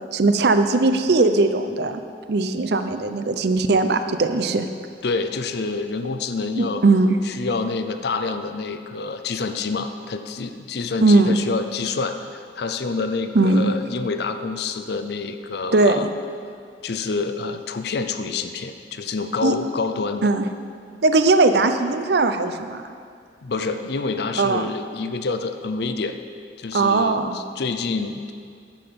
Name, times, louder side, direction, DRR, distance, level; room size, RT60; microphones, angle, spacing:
voice 1, 0.1-2.0 2.3-4.7 6.6-7.2 11.0-11.4 13.3-13.7 15.7-16.1 19.4-19.6 20.2-20.4 21.0-22.8 24.4-24.7 26.7-27.4, right 3 dB, 65° right, 9 dB, 0.6 m, -19 dB
voice 2, 5.0-6.8 7.2-16.1 16.8-20.3 23.4-26.2 26.6-28.3, left 4 dB, 65° left, 8 dB, 0.6 m, -27 dB
10.5 x 7.8 x 5.3 m, 2.2 s
head